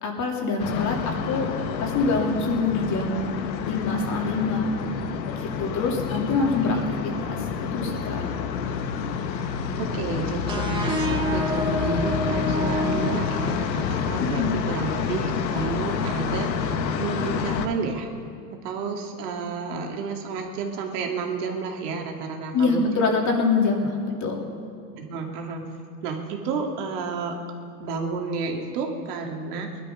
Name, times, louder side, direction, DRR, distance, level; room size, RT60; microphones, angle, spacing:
voice 1, 0.0-1.5 1.8-3.3 3.7-4.7 5.4-6.8 7.0-7.4 7.7-8.2 14.3-14.5 22.5-23.9 24.2-24.4, left 4 dB, 35° left, 1 dB, 2.7 m, -24 dB
sound 1, 0.6-17.7, left 6 dB, 85° left, 1.3 m, -28 dB
voice 2, 9.8-18.1 18.5-22.8 24.9-25.7 26.0-27.4 27.8-29.8, right 4 dB, 65° right, 2 dB, 2.3 m, -31 dB
sound 2, 10.5-14.0, equal, 10° right, 1.4 m, -28 dB
20.0 x 12.0 x 5.6 m, 2.3 s
hypercardioid pair, 125°, 50 cm